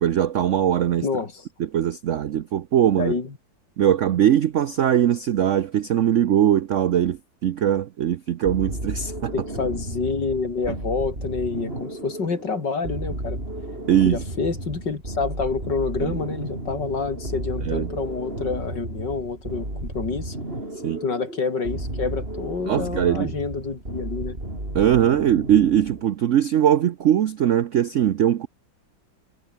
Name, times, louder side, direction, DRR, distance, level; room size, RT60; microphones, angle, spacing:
voice 1, 0.0-1.1 1.6-3.1 3.8-9.3 13.9-14.2 16.0-16.2 17.6-17.9 20.8-21.0 22.7-23.3 24.7-28.5, right 10 dB, 75° right, 0.7 m, -21 dB
voice 2, 1.0-1.4 2.9-3.3 9.3-13.4 14.1-20.4 21.0-24.4, left 4 dB, 60° left, 3.7 m, -28 dB
sound 1, 8.4-26.0, right 1 dB, 30° right, 6.5 m, -33 dB
omnidirectional pair, 2.1 m